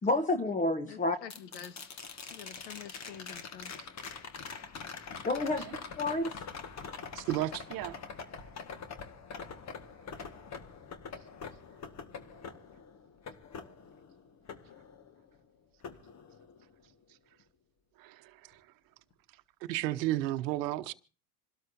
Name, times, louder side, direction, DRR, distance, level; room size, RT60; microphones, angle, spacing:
voice 1, 0.0-1.2 5.2-5.7 6.0-6.4, left 2 dB, 15° left, 1.0 m, -29 dB
voice 2, 0.9-1.8 2.3-3.7, left 8 dB, 85° left, 1.7 m, -47 dB
sound 1, 1.3-15.4 15.8-16.9 19.1-19.2, left 5 dB, 35° left, 1.7 m, -45 dB
voice 3, 5.4-5.7 6.7-6.8 7.2-7.3 7.7-8.6 10.1-10.4 11.2-11.3 11.7-11.8 14.6-14.7 16.6-17.4 17.9-19.4, right 15 dB, 45° right, 1.2 m, -50 dB
voice 4, 7.1-7.6 19.7-20.9, right 15 dB, 75° right, 1.0 m, -31 dB
27.5 x 12.5 x 2.7 m
hypercardioid pair, 95°, 48 cm